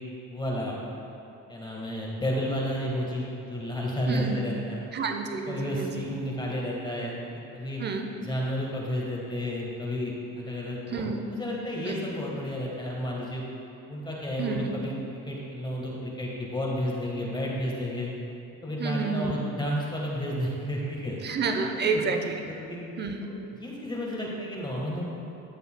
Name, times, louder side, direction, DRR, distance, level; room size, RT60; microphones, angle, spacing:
voice 1, 0.3-0.8 1.5-4.8 5.5-7.2 7.5-7.8 8.2-13.4 13.9-18.1 18.6-21.8 22.4-22.8 23.2-25.1, equal, 15° left, -4 dB, 1.5 m, -32 dB
voice 2, 4.1-4.4 4.9-5.9 7.8-8.1 10.9-11.2 11.8-12.0 14.4-14.7 18.8-19.4 21.2-22.3 23.0-23.2, right 4 dB, 35° right, 4 dB, 0.7 m, -29 dB
12.5 x 6.8 x 2.3 m, 2.8 s
cardioid pair, 100°, 31 cm